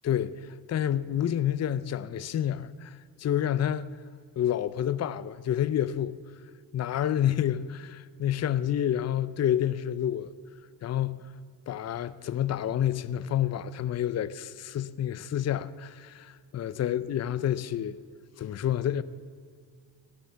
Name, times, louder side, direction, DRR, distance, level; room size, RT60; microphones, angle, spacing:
voice 1, 0.0-3.9 4.4-6.2 6.7-10.3 10.8-11.2 11.7-18.0 18.4-19.0, left 10 dB, 40° left, 0.5 m, -29 dB
16.0 x 11.0 x 7.4 m
cardioid pair, 115°, 42 cm